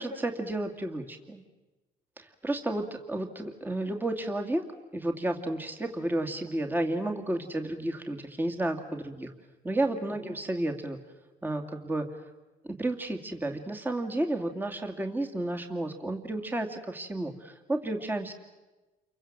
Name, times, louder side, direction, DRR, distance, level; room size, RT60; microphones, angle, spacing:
voice 1, 0.0-1.4 2.2-4.6 4.9-9.3 9.6-11.0 11.4-12.1 12.6-18.3, right 1 dB, 10° right, 4 dB, 2.5 m, -32 dB
29.5 x 24.0 x 7.7 m, 1.1 s
cardioid pair, 110°, 17 cm